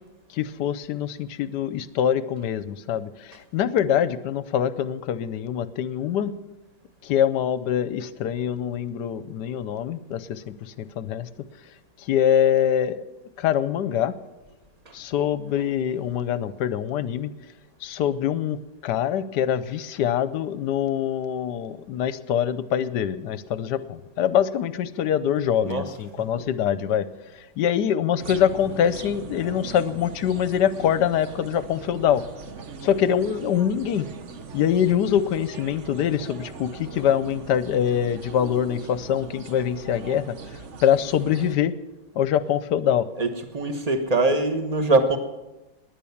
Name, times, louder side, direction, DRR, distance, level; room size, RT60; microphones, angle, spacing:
voice 1, 0.3-6.3 7.0-11.3 12.0-13.0 13.4-14.1 14.9-17.3 17.8-27.1 27.3-32.2 32.8-34.1 34.5-40.4 40.8-41.7 42.1-43.1, left 9 dB, 70° left, 15 dB, 1.2 m, -24 dB
sound 1, 28.2-41.6, right 5 dB, 50° right, 1.0 m, -40 dB
voice 2, 43.2-45.2, right 2 dB, 25° right, 7 dB, 1.1 m, -23 dB
19.0 x 9.9 x 7.1 m, 1.0 s
omnidirectional pair, 2.1 m